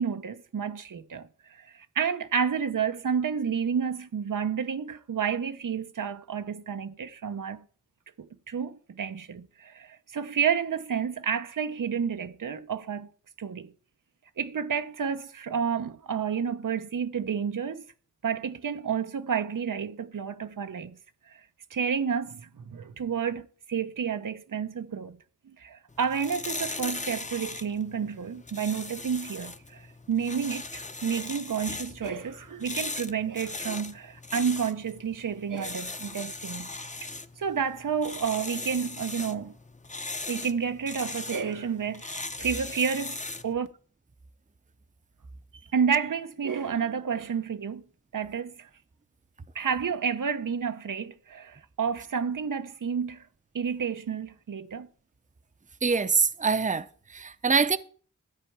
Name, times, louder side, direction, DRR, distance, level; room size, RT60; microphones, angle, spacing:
voice 1, 0.0-7.6 8.2-13.1 13.4-13.7 14.4-17.8 18.2-21.0 21.3-21.4 21.7-25.2 25.6-36.7 37.0-37.1 37.4-39.5 40.3-43.7 45.7-47.8 48.1-48.7 49.5-53.3 53.5-54.9, right 7 dB, 90° right, 0.8 m, -30 dB
sound 1, 25.9-43.5, left 3 dB, 25° left, 0.7 m, -39 dB
voice 2, 55.8-57.8, right 5 dB, 25° right, 0.6 m, -24 dB
13.0 x 4.5 x 8.4 m
wide cardioid pair, 75°, 31 cm